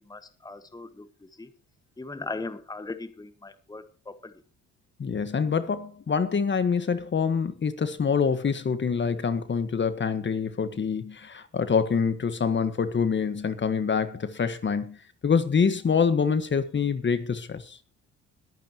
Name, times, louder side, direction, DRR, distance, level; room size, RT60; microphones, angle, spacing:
voice 1, 0.1-1.5 2.0-4.3, left 3 dB, 10° left, 1.4 m, -39 dB
voice 2, 5.0-15.0 15.2-17.8, left 6 dB, 40° left, 1.4 m, -26 dB
21.5 x 9.0 x 3.0 m
cardioid pair, 90°, 30 cm